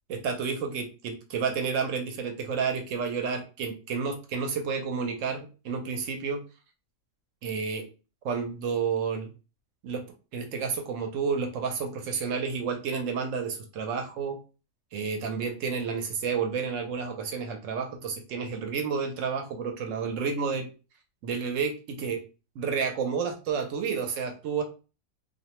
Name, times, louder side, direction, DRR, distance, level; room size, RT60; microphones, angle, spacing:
voice 1, 0.1-6.4 7.4-7.9 8.2-9.3 9.8-10.0 10.3-14.4 14.9-20.7 21.2-22.2 22.6-24.6, right 5 dB, 70° right, 4 dB, 1.0 m, -30 dB
2.4 x 2.1 x 2.9 m, 0.33 s
omnidirectional pair, 1.4 m